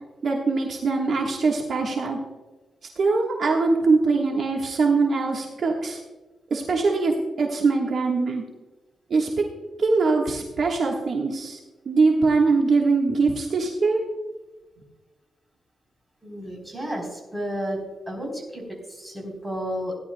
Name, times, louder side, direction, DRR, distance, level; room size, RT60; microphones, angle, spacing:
voice 1, 0.2-2.2 3.0-6.0 6.5-8.4 9.1-9.4 9.8-11.6 11.8-14.0, right 4 dB, 55° right, 0 dB, 1.4 m, -22 dB
voice 2, 16.2-17.8 18.1-20.0, equal, 10° right, -1 dB, 3.7 m, -32 dB
17.0 x 11.0 x 2.2 m, 1.2 s
cardioid pair, 115°, 0 cm